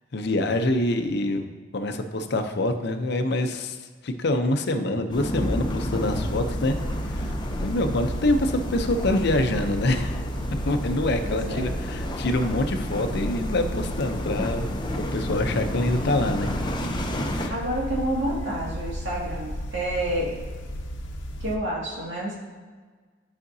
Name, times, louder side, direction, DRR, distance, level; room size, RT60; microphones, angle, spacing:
voice 1, 0.1-1.5 1.7-6.8 7.0-7.3 7.6-10.2 10.6-16.5 17.2-17.7, left 1 dB, 60° left, 7 dB, 0.7 m, -26 dB
sound 1, 5.1-17.5, left 1 dB, 25° left, 0.6 m, -32 dB
sound 2, 6.0-21.6, equal, 85° left, 0.9 m, -33 dB
voice 2, 11.2-11.7 17.5-20.3 21.4-22.4, right 1 dB, 80° right, -4 dB, 2.1 m, -29 dB
11.5 x 5.0 x 2.7 m, 1.5 s
head